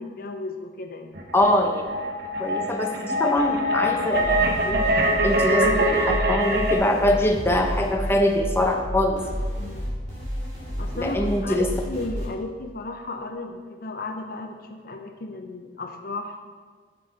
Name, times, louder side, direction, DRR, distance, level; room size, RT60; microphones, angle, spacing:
voice 1, 0.0-1.2 4.7-4.9 9.6-9.9 10.8-16.4, left 2 dB, 55° left, 5 dB, 0.7 m, -34 dB
sound 1, 1.1-6.7, right 1 dB, 65° right, 1.1 m, -23 dB
voice 2, 1.3-1.8 2.4-4.8 5.2-9.2 10.9-11.7, left 1 dB, 15° left, 2 dB, 0.7 m, -23 dB
sound 2, 4.1-12.3, equal, 45° right, 2.8 m, -31 dB
9.1 x 6.9 x 4.0 m, 1.5 s
head